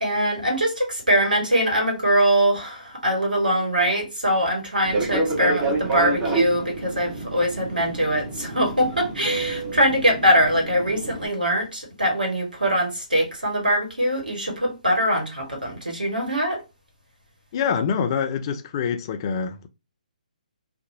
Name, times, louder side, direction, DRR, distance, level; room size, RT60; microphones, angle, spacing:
voice 1, 0.0-16.6, equal, 90° right, 1.2 m, -22 dB
Fixed-wing aircraft airplane, 4.8-11.3, right 2 dB, 30° right, 1.0 m, -28 dB
voice 2, 17.5-19.7, left 6 dB, 35° left, 0.4 m, -25 dB
2.8 x 2.2 x 2.6 m
figure-of-eight pair, 135°, 4 cm